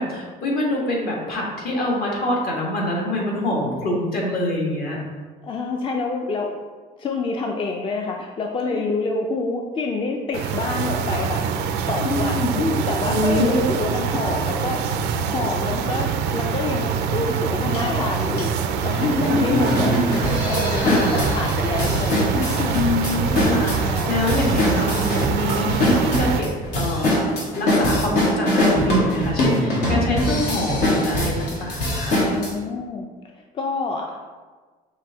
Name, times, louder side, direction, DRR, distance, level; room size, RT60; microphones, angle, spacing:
voice 1, 0.0-5.0 8.6-8.9 12.0-12.5 13.1-13.6 19.2-19.9 20.7-21.4 22.7-26.5 26.7-32.2, left 1 dB, 65° left, -2 dB, 1.5 m, -25 dB
voice 2, 5.4-6.6 7.0-11.4 11.9-14.8 15.2-20.0 20.4-22.8 23.7-24.2 29.9-30.4 32.3-33.1 33.5-34.2, left 3 dB, 30° left, 1 dB, 0.4 m, -27 dB
sound 1, 10.3-26.4, right 6 dB, 80° right, 0.4 m, -25 dB
sound 2, 17.7-17.8 18.4-18.5 19.0-32.5, left 1 dB, 85° left, 1.4 m, -22 dB
5.8 x 2.7 x 3.4 m, 1.4 s
cardioid pair, 110°, 17 cm